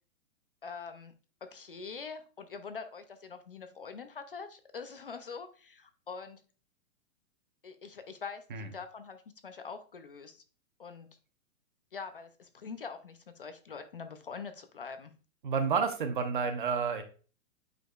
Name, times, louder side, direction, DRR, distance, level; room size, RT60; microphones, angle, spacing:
voice 1, 0.6-1.1 1.4-6.4 7.6-10.4 10.8-11.1 11.9-15.1, left 5 dB, 40° left, 9 dB, 0.4 m, -44 dB
voice 2, 15.4-17.0, right 5 dB, 35° right, 8 dB, 0.7 m, -30 dB
9.0 x 5.1 x 2.3 m, 0.38 s
hypercardioid pair, 175°, 42 cm